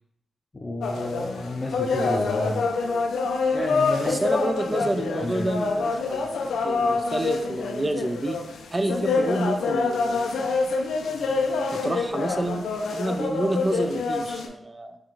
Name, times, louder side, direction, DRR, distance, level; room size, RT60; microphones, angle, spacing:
voice 1, 0.6-2.6 3.5-4.2 4.7-4.8 5.2-5.4, left 2 dB, 30° left, 0 dB, 0.5 m, -30 dB
sound 1, 0.8-14.5, left 4 dB, 90° left, 0.5 m, -26 dB
voice 2, 4.0-6.3 6.6-8.4 8.7-10.6 11.7-15.0, right 2 dB, 25° right, 8 dB, 0.3 m, -29 dB
6.0 x 2.3 x 3.0 m, 0.82 s
cardioid pair, 75°, 0 cm